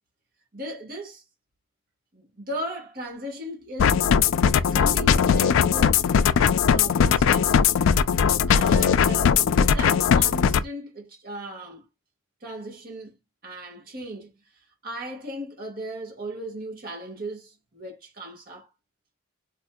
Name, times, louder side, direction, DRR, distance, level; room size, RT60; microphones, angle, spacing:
voice 1, 0.5-1.2 2.1-4.0 4.7-6.0 6.7-7.6 8.5-11.8 12.4-13.2 13.4-14.3 14.8-18.7, right 1 dB, 45° right, 1.3 m, -37 dB
sound 1, 3.8-10.6, left 7 dB, 70° left, 0.3 m, -19 dB
4.1 x 2.6 x 2.2 m
head